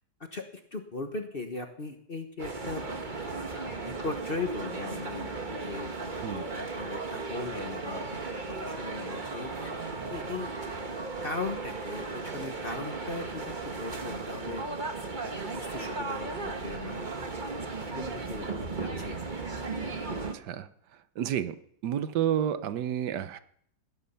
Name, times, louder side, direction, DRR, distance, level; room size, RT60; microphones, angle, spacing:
voice 1, 0.3-3.1 3.8-8.2 8.6-9.7 10.1-10.5 11.2-14.6 15.2-17.0 17.9-19.2, left 3 dB, 35° left, 5 dB, 1.3 m, -38 dB
sound 1, 2.4-20.4, right 3 dB, 30° right, 1.3 m, -36 dB
voice 2, 6.0-6.5 20.2-21.6 21.8-23.4, right 10 dB, 70° right, 12 dB, 1.5 m, -31 dB
19.5 x 11.0 x 5.7 m, 0.67 s
omnidirectional pair, 1.9 m